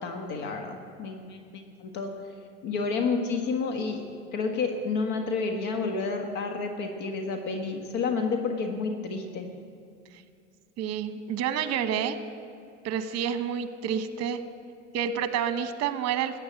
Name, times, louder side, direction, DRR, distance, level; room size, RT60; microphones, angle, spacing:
voice 1, 0.0-2.1 2.6-4.0 4.3-9.5, left 4 dB, 60° left, 4 dB, 1.6 m, -30 dB
voice 2, 10.8-12.2 12.8-14.4 14.9-16.4, right 8 dB, 50° right, 10 dB, 1.1 m, -29 dB
14.0 x 9.0 x 7.5 m, 2.3 s
supercardioid pair, 100°, 34 cm